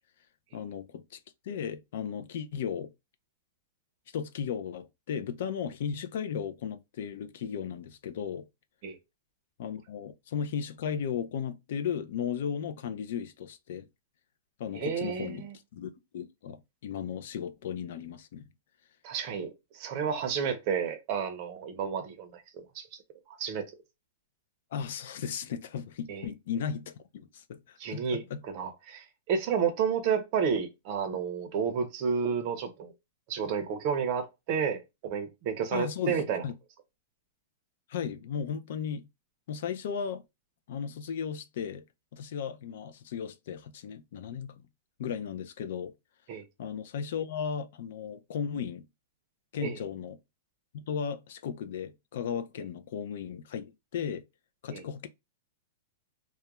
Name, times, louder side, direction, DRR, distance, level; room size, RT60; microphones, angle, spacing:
voice 1, 0.5-1.0 1.4-2.9 4.1-8.5 9.6-13.9 14.6-18.5 24.7-28.0 28.3-28.4 35.7-36.5 37.9-39.1 39.5-40.2 40.7-41.8 42.1-44.6 45.0-45.9 46.6-48.8 49.5-50.2 50.9-53.7 53.9-54.2 54.6-55.1, left 7 dB, 55° left, 0.4 m, -35 dB
voice 2, 14.7-15.5 19.0-19.5 19.7-22.9 23.4-23.6 26.1-26.3 27.8-32.9 33.3-36.4 46.3-46.4 49.6-49.8 54.7-54.8, right 7 dB, 35° right, 0.6 m, -31 dB
2.3 x 2.1 x 2.8 m
supercardioid pair, 170°, 0 cm